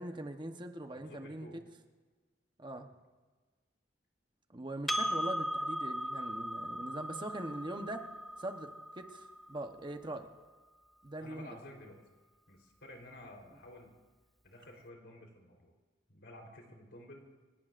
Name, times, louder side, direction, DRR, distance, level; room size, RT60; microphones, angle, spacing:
voice 1, 0.0-1.5 2.6-2.9 4.5-8.1 8.4-10.3 11.0-11.5, right 1 dB, 25° right, 6 dB, 1.0 m, -42 dB
voice 2, 0.9-1.6 11.2-12.0 12.5-13.9 14.4-15.7 16.1-17.3, left 1 dB, 80° left, 1 dB, 3.8 m, -52 dB
Percussion, 4.9-9.7, equal, ahead, 0.7 m, -38 dB
28.5 x 17.5 x 2.6 m, 1.3 s
head